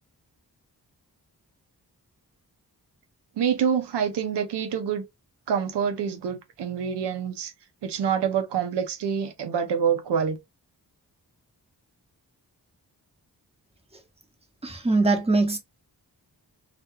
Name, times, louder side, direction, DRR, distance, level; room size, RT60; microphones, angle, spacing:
voice 1, 3.4-5.0 5.5-7.5 7.8-10.4, right 7 dB, 90° right, 0.5 m, -26 dB
voice 2, 14.6-15.6, right 3 dB, 15° right, 0.8 m, -22 dB
2.2 x 2.1 x 2.8 m
cardioid pair, 45°, 40 cm